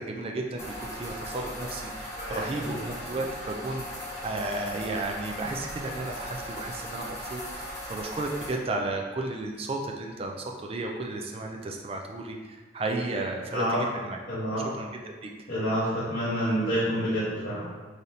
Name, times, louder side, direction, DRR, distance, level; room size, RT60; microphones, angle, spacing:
voice 1, 0.0-3.9 4.2-14.2 14.7-14.9 15.2-15.3, right 2 dB, 30° right, 1 dB, 0.4 m, -33 dB
sound 1, 0.6-8.5, equal, 15° left, 0.8 m, -38 dB
voice 2, 2.2-2.8 13.5-13.8 14.3-14.6 15.5-17.6, equal, 55° left, -14 dB, 1.2 m, -28 dB
3.9 x 3.3 x 2.7 m, 1.3 s
head